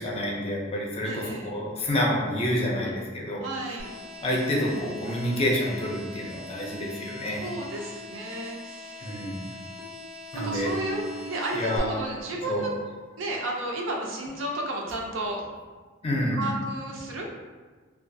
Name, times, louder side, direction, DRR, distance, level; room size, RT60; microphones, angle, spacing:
voice 1, 0.0-3.4 4.2-7.5 9.0-9.4 10.3-10.7 11.5-12.0 12.5-12.6 16.0-16.5, left 1 dB, 30° left, -2 dB, 0.4 m, -28 dB
voice 2, 1.0-1.5 2.8-2.9 3.4-3.9 7.3-9.2 10.4-12.7 13.2-15.4 16.3-17.3, right 1 dB, 80° right, 0 dB, 0.5 m, -33 dB
sound 1, 3.8-11.8, left 2 dB, 30° right, 0.5 m, -43 dB
Marimba xylophone, 10.3-12.4, right 5 dB, 85° left, 0.4 m, -38 dB
2.3 x 2.3 x 2.5 m, 1.4 s
head